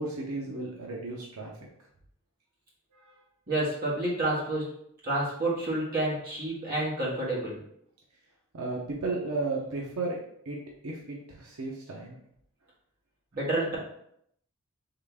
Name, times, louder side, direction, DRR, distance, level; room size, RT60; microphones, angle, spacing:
voice 1, 0.0-1.5 2.9-3.1 8.5-10.2 10.5-10.6 10.8-12.2, right 3 dB, 85° right, -2 dB, 0.7 m, -34 dB
voice 2, 3.5-4.7 5.0-7.6 13.3-13.8, right 1 dB, 45° right, -6 dB, 1.7 m, -29 dB
3.9 x 3.3 x 3.5 m, 0.72 s
head